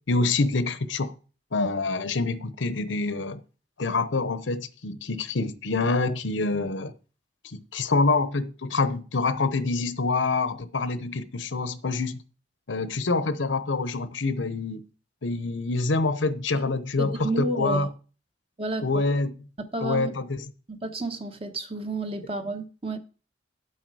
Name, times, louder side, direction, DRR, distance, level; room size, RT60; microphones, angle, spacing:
voice 1, 0.1-1.1 1.5-3.4 3.8-6.9 7.4-12.2 12.7-14.8 15.2-17.9 18.8-19.3 19.8-20.4, left 3 dB, 85° left, 0.9 m, -26 dB
voice 2, 17.0-17.9 18.6-19.0 19.6-20.1 20.7-23.0, right 2 dB, 30° right, 1.1 m, -31 dB
9.7 x 8.1 x 4.7 m
head